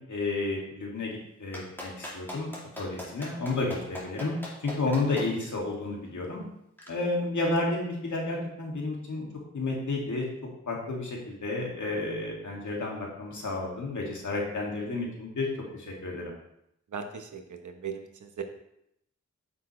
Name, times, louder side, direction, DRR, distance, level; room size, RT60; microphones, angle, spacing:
voice 1, 0.1-4.3 4.6-6.4 6.9-9.3 9.5-10.3 10.7-15.5 15.7-16.3, left 2 dB, 85° left, -2 dB, 2.2 m, -31 dB
Clapping, 1.5-5.3 6.8-6.9, left 1 dB, 5° left, 2.5 m, -39 dB
voice 2, 16.9-18.4, right 6 dB, 85° right, 6 dB, 1.0 m, -38 dB
9.0 x 6.4 x 3.2 m, 0.77 s
wide cardioid pair, 100°, 29 cm